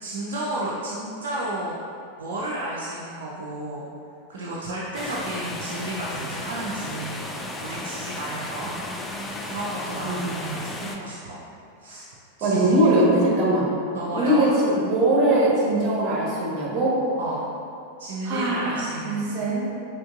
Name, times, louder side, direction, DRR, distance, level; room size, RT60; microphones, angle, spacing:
voice 1, 0.0-1.8 2.2-3.9 4.3-7.2 7.6-8.7 9.4-11.4 11.8-12.1 12.4-13.1 13.9-14.6 17.2-17.4 18.0-19.5, right 1 dB, 60° right, -5 dB, 0.5 m, -32 dB
sound 1, 4.9-11.0, left 1 dB, 10° left, 0.4 m, -34 dB
voice 2, 8.6-9.6 10.0-10.3 12.4-13.7 14.1-16.9 18.2-19.7, right 1 dB, 30° right, -4 dB, 1.2 m, -22 dB
5.1 x 4.3 x 2.4 m, 2.5 s
figure-of-eight pair, 90°, 0 cm